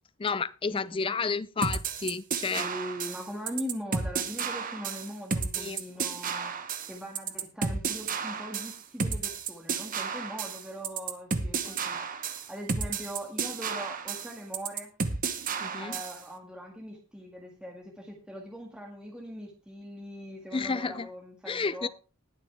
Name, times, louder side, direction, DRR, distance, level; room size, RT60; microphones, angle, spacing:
voice 1, 0.2-2.7 5.6-5.8 11.6-11.8 15.6-16.0 20.5-21.1 21.5-21.9, left 4 dB, 25° left, 0.4 m, -31 dB
voice 2, 0.7-1.3 2.6-6.5 6.9-14.9 15.8-21.9, equal, 5° right, 1.8 m, -41 dB
sound 1, 1.6-16.2, right 5 dB, 35° right, 1.0 m, -32 dB
20.0 x 6.7 x 3.4 m
head